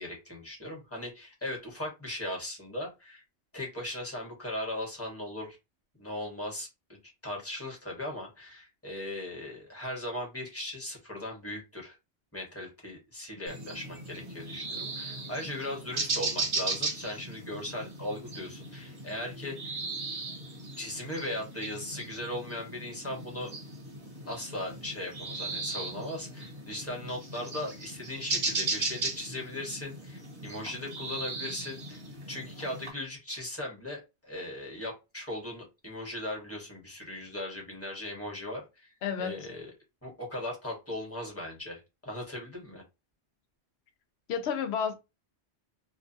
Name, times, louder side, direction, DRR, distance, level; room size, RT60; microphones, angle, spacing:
voice 1, 0.0-3.2 3.5-5.6 6.0-6.7 7.2-12.0 12.3-19.8 20.8-23.5 24.3-32.0 32.3-39.7 40.0-42.8, left 1 dB, 15° left, 1.1 m, -38 dB
sound 1, 13.5-32.9, right 3 dB, 60° right, 1.2 m, -37 dB
voice 2, 39.0-39.5 44.3-44.9, left 7 dB, 75° left, 0.9 m, -31 dB
2.7 x 2.2 x 2.7 m
omnidirectional pair, 1.1 m